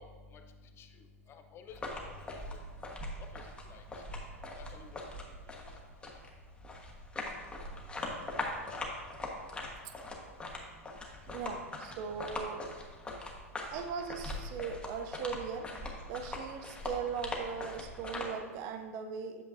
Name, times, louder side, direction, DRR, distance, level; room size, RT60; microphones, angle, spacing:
voice 1, 0.0-4.1 4.4-5.8 11.1-11.2 12.1-12.2, left 4 dB, 30° left, 6 dB, 0.6 m, -54 dB
sound 1, 1.7-18.3, left 2 dB, 15° left, 1.1 m, -41 dB
voice 2, 11.3-12.6 13.7-15.7 16.1-19.4, right 6 dB, 45° right, 7 dB, 0.5 m, -39 dB
8.2 x 6.7 x 2.6 m, 1.4 s
figure-of-eight pair, 90°, 8 cm